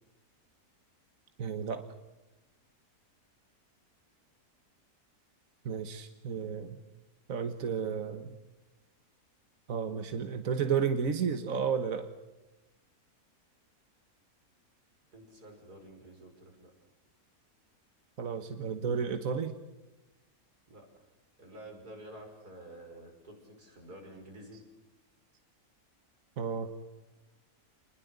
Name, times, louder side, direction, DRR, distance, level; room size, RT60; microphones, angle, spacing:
voice 1, 1.4-1.9 5.6-6.8 7.3-8.3 9.7-12.1 18.2-19.5 24.5-24.6 26.4-26.7, right 6 dB, 60° right, 8 dB, 1.6 m, -32 dB
voice 2, 15.1-16.7 20.7-21.0 21.4-24.6, right 1 dB, 80° right, 2 dB, 6.6 m, -50 dB
28.5 x 21.0 x 8.0 m, 1.0 s
omnidirectional pair, 1.6 m